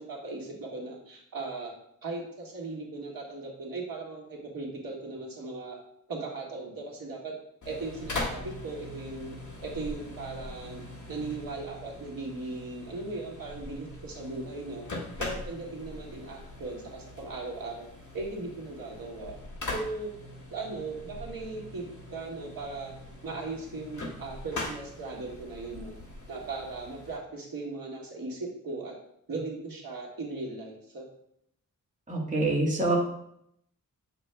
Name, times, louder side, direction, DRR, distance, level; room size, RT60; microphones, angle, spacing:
voice 1, 0.0-1.7 2.0-5.8 6.1-7.3 7.6-9.4 9.6-10.8 11.1-14.8 15.2-17.9 18.1-19.3 19.7-20.1 20.5-22.9 23.2-25.9 26.3-28.9 29.3-31.0, right 3 dB, 85° right, -2 dB, 1.7 m, -38 dB
sound 1, 7.6-27.2, left 2 dB, 60° left, 1.7 m, -41 dB
voice 2, 32.1-33.0, right 2 dB, 25° right, -4 dB, 1.5 m, -26 dB
7.9 x 6.7 x 2.2 m, 0.73 s
wide cardioid pair, 165°, 33 cm